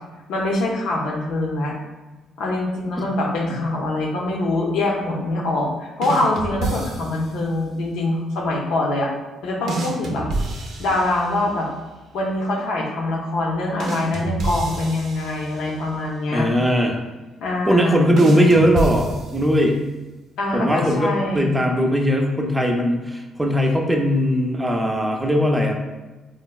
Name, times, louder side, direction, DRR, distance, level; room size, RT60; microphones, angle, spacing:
voice 1, 0.3-1.8 2.4-9.1 9.4-10.3 10.8-11.7 12.1-16.5 17.4-18.1 20.4-21.5, left 2 dB, 85° left, -1 dB, 0.6 m, -24 dB
sound 1, 6.0-7.4 9.7-11.6 13.8-15.9 18.2-19.8, right 2 dB, 75° right, 0.5 m, -29 dB
voice 2, 16.3-17.0 17.6-19.8 20.5-25.7, equal, 10° right, 1 dB, 0.5 m, -19 dB
4.3 x 2.1 x 2.3 m, 1.2 s
cardioid pair, 90°, 0 cm